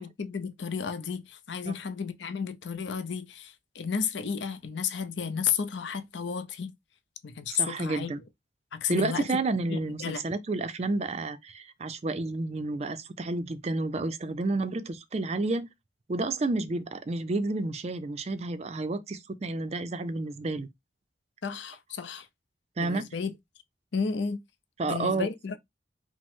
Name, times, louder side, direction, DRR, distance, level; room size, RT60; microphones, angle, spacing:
voice 1, 0.0-6.7 7.2-8.1 8.7-9.3 9.7-10.2 21.4-22.3 22.8-23.3 23.9-24.4 24.9-25.6, left 6 dB, 70° left, 0.6 m, -32 dB
voice 2, 7.5-8.2 8.9-15.7 16.1-20.7 22.8-23.0 24.8-25.3, right 2 dB, 35° right, 0.4 m, -30 dB
5.0 x 2.0 x 3.6 m
head